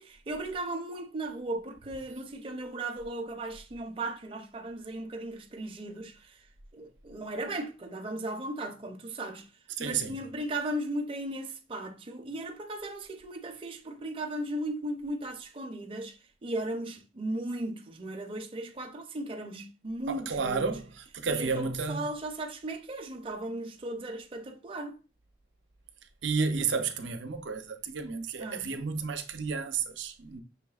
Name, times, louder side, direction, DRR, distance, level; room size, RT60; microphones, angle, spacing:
voice 1, 0.0-6.4 6.7-9.5 9.8-20.7 21.3-25.0 28.4-28.7, right 1 dB, 30° right, 0.5 m, -36 dB
voice 2, 9.8-10.2 20.1-22.1 26.2-30.4, right 5 dB, 80° right, 0.6 m, -32 dB
5.7 x 3.4 x 2.3 m
head